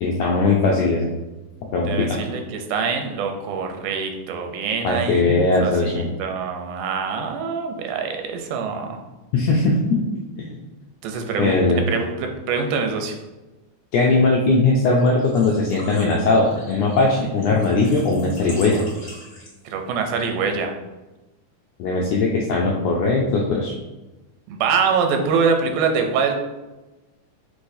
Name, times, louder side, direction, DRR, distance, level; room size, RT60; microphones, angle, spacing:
voice 1, 0.0-1.1 1.7-2.2 4.8-6.1 9.3-10.0 10.4-10.6 11.4-11.8 13.9-18.8 21.8-23.7, left 3 dB, 85° left, -1 dB, 1.5 m, -19 dB
voice 2, 1.9-9.0 11.0-13.2 19.7-20.7 24.5-26.4, right 5 dB, 90° right, 4 dB, 2.2 m, -24 dB
Engine / Trickle dribble / Fill (with liquid), 15.0-19.8, left 1 dB, 45° left, 1.0 m, -40 dB
6.1 x 3.1 x 2.6 m, 1.1 s
omnidirectional pair, 3.5 m